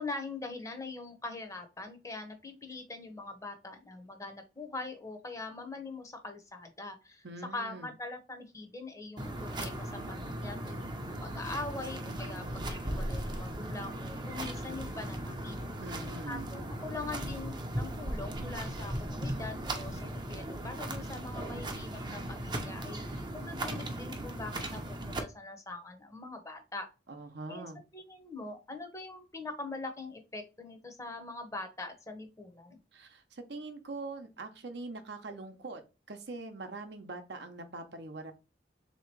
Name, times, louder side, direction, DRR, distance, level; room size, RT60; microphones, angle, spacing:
voice 1, 0.0-7.2 7.5-10.8 11.2-15.6 16.3-26.9 27.5-27.6 27.9-32.8, left 3 dB, 15° left, 5 dB, 0.8 m, -42 dB
voice 2, 7.2-7.9 15.8-16.4 27.1-27.8 32.9-35.8 36.1-38.3, right 3 dB, 65° right, 6 dB, 0.8 m, -43 dB
sound 1, 9.2-25.2, right 1 dB, 25° right, 0.7 m, -37 dB
3.7 x 2.9 x 4.5 m, 0.30 s
head